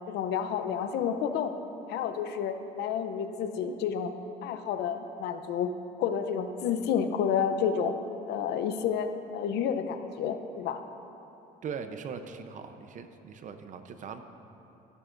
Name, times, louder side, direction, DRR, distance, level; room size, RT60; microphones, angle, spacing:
voice 1, 0.1-1.5 1.9-4.1 4.4-5.7 6.0-8.0 8.3-10.8, left 7 dB, 80° left, 8 dB, 0.7 m, -30 dB
voice 2, 11.6-14.2, right 6 dB, 50° right, 8 dB, 0.7 m, -40 dB
15.5 x 11.0 x 2.6 m, 2.9 s
cardioid pair, 110°, 17 cm